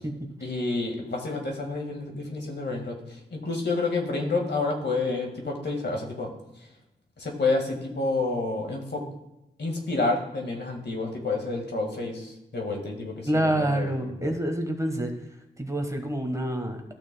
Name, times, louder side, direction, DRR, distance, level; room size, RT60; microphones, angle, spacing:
voice 1, 0.4-3.0 3.3-6.3 7.2-9.0 9.6-14.3, left 3 dB, 65° left, 1 dB, 1.8 m, -29 dB
voice 2, 13.3-15.1 15.6-16.8, right 1 dB, 15° right, 4 dB, 1.3 m, -27 dB
14.0 x 6.2 x 2.2 m, 0.93 s
cardioid pair, 60°, 19 cm